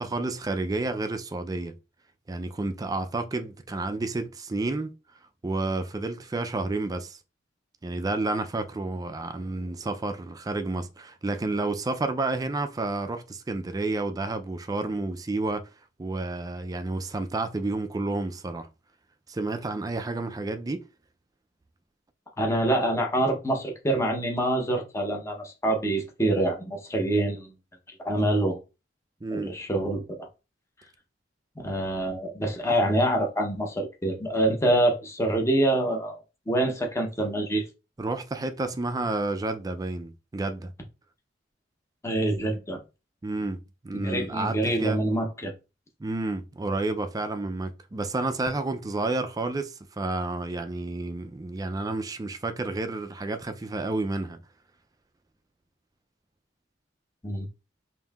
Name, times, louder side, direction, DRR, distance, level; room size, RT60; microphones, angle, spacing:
voice 1, 0.0-1.7 2.3-4.9 5.4-7.2 7.8-15.7 16.0-18.7 19.3-20.8 29.2-29.6 38.0-40.7 43.2-43.6 43.8-45.0 46.0-54.4, right 2 dB, 20° right, 0.3 m, -30 dB
voice 2, 22.4-27.5 28.0-28.6 29.3-30.3 31.6-36.2 36.5-37.7 42.0-42.8 43.9-45.5 57.2-57.5, right 1 dB, 15° left, 0.7 m, -26 dB
5.4 x 2.6 x 2.3 m
head